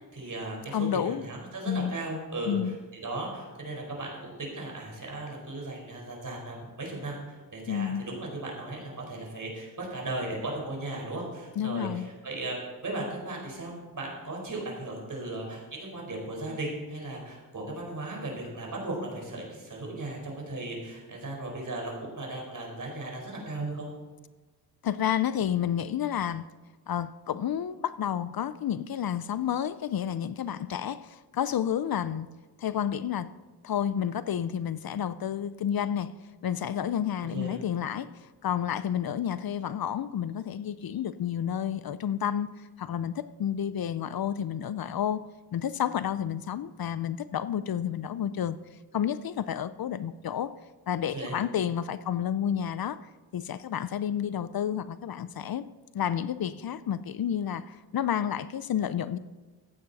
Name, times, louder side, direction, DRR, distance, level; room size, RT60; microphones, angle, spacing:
voice 1, 0.1-2.6 3.0-12.6 12.8-23.9 37.3-37.6 51.1-51.4, right 2 dB, 50° right, -1 dB, 4.5 m, -36 dB
voice 2, 0.7-1.2 1.7-1.9 2.4-2.8 7.7-8.1 11.6-12.1 24.8-26.4 26.9-32.3 32.6-33.3 33.6-36.1 36.4-45.3 45.5-48.6 48.9-50.5 50.9-55.6 55.9-59.2, left 9 dB, 60° left, 15 dB, 0.5 m, -30 dB
14.5 x 9.5 x 4.1 m, 1.3 s
cardioid pair, 80°, 41 cm